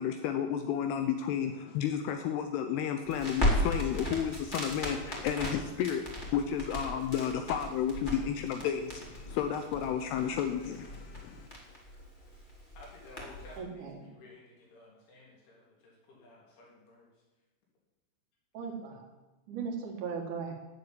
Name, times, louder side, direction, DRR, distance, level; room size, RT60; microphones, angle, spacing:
voice 1, 0.0-11.5, left 8 dB, 85° left, 6 dB, 2.3 m, -32 dB
Crackle, 3.0-13.6, left 1 dB, 20° left, 1.5 m, -36 dB
voice 2, 12.8-17.1, left 2 dB, 70° left, -4 dB, 5.9 m, -54 dB
voice 3, 13.6-14.1 18.5-19.1 19.5-20.5, right 5 dB, 55° right, 1 dB, 2.5 m, -38 dB
11.0 x 6.9 x 9.3 m, 1.1 s
omnidirectional pair, 5.6 m